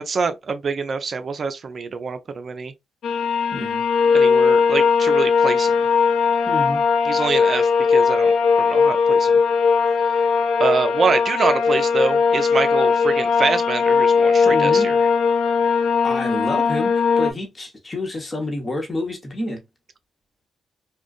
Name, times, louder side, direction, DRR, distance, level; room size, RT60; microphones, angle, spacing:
voice 1, 0.0-2.7 4.1-5.8 7.0-8.3 8.6-9.4 10.1-10.2 10.6-15.0, right 5 dB, 55° right, 0.4 m, -25 dB
sound 1, 3.0-17.3, left 5 dB, 70° left, 0.4 m, -18 dB
voice 2, 3.5-3.8 6.5-6.8 14.4-15.0 16.0-19.6, left 1 dB, 30° left, 1.0 m, -28 dB
2.4 x 2.2 x 2.3 m
supercardioid pair, 55°, 0 cm